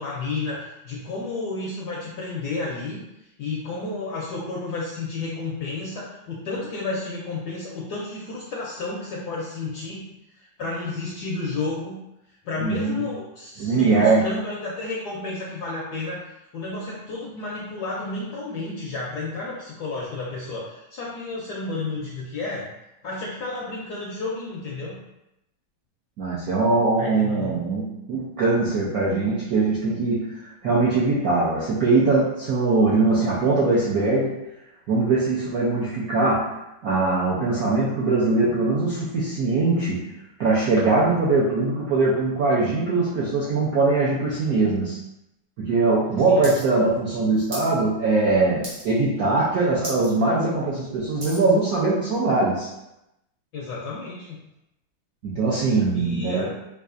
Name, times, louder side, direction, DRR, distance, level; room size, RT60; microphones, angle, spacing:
voice 1, 0.0-3.0 3.4-10.0 10.3-12.0 12.4-16.2 16.5-22.7 23.0-25.0 27.0-27.6 46.3-46.5 53.5-54.4 55.9-56.5, left 3 dB, 75° left, -4 dB, 0.9 m, -31 dB
voice 2, 12.6-13.0 13.6-14.3 26.2-34.3 34.9-36.5 36.8-40.1 40.4-45.0 45.6-52.7 55.2-56.5, right 3 dB, 75° right, -7 dB, 0.8 m, -21 dB
sound 1, 46.4-46.6 46.9-47.7 48.1-48.3 48.6-49.1 49.4-49.5 49.8-50.1 50.5-51.5 52.1-52.2, right 1 dB, 50° right, 1.3 m, -36 dB
4.8 x 2.4 x 2.5 m, 0.87 s
omnidirectional pair, 2.3 m